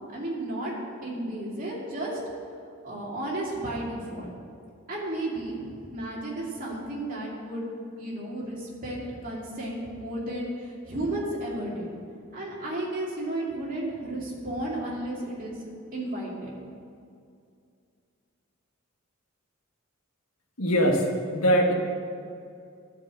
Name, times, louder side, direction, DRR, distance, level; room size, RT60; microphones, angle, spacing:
voice 1, 0.1-0.7 1.0-2.2 2.8-4.3 4.9-7.7 8.0-11.9 12.3-15.5 15.9-16.5, right 1 dB, 40° right, -4 dB, 2.6 m, -33 dB
voice 2, 20.6-21.7, equal, 85° left, 2 dB, 1.4 m, -22 dB
12.5 x 5.1 x 8.5 m, 2.4 s
head